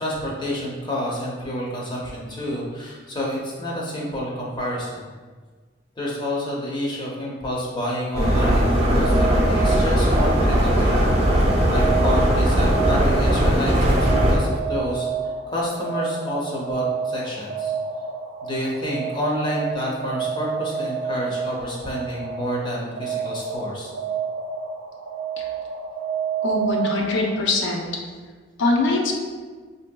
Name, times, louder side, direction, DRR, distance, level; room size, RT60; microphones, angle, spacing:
voice 1, 0.0-5.0 6.0-11.4 11.7-15.1 15.5-17.7 18.4-23.9, equal, 25° left, -5 dB, 0.6 m, -29 dB
sound 1, 8.1-14.4, equal, 30° right, 0.6 m, -19 dB
sound 2, 8.9-27.4, right 6 dB, 85° right, 0.5 m, -30 dB
voice 2, 26.4-27.8 28.6-29.1, left 2 dB, 85° left, 0 dB, 0.6 m, -22 dB
5.2 x 2.7 x 2.2 m, 1.5 s
head